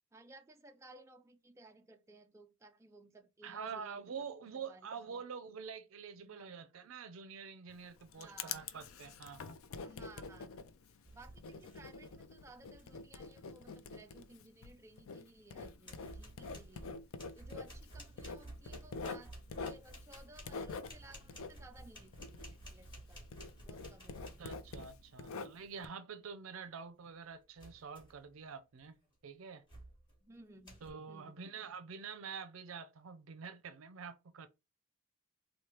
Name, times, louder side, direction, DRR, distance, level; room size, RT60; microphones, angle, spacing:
voice 1, 0.1-4.1 4.7-5.2 6.2-6.6 8.1-8.7 9.8-16.9 17.3-19.3 19.6-23.2 23.6-24.5 30.2-31.5, right 2 dB, 15° right, 0.3 m, -59 dB
voice 2, 3.4-9.6 24.4-29.0 29.2-29.6 30.8-34.5, right 6 dB, 75° right, 0.5 m, -47 dB
Writing, 7.7-23.0 23.3-25.9, left 4 dB, 85° left, 0.4 m, -46 dB
sound 1, 11.0-12.3 12.5-13.0 15.0-15.1 15.5-25.1 27.6-28.3 28.8-29.0 29.7-30.1 30.6-30.9, right 1 dB, 20° left, 1.5 m, -53 dB
3.1 x 2.2 x 4.2 m
head